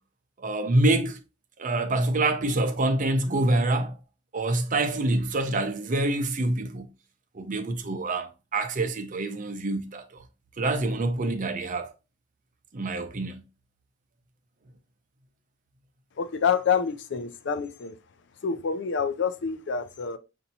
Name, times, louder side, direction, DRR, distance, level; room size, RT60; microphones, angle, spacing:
voice 1, 0.4-1.2 1.6-4.0 4.3-6.9 7.3-10.2 10.6-11.9 12.7-13.4, right 2 dB, 45° right, 0.6 m, -26 dB
voice 2, 16.2-18.0 18.4-20.2, left 6 dB, 65° left, 0.5 m, -27 dB
5.5 x 2.6 x 2.7 m
head